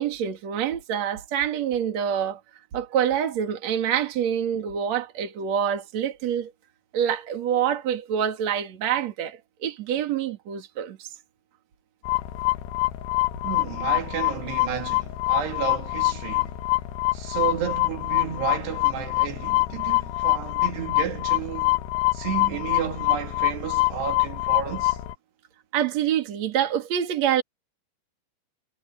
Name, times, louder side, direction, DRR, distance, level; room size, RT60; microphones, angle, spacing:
voice 1, 0.0-2.4 2.7-6.5 6.9-11.1 25.7-27.4, right 9 dB, 45° right, 3.2 m, -26 dB
sound 1, 12.0-25.1, left 21 dB, 85° left, 3.3 m, -25 dB
voice 2, 13.4-16.6 17.1-21.8 22.1-25.0, right 8 dB, 90° right, 4.7 m, -32 dB
omnidirectional pair, 4.6 m